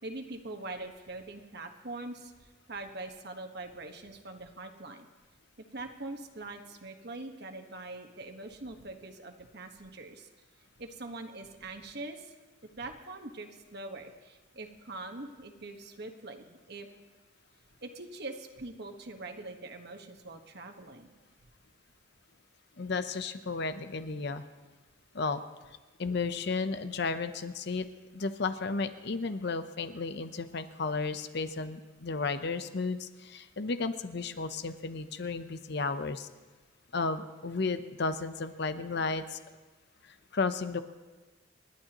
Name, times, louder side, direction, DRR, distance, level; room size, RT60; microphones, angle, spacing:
voice 1, 0.0-5.1 5.6-10.3 10.8-12.3 12.8-16.9 17.8-21.1, right 2 dB, 55° right, 5 dB, 1.4 m, -43 dB
voice 2, 22.8-24.4 25.1-25.4 26.0-27.9 28.1-36.3 36.9-39.4 40.0-40.8, left 4 dB, 60° left, 10 dB, 0.8 m, -33 dB
30.0 x 11.5 x 3.0 m, 1.3 s
head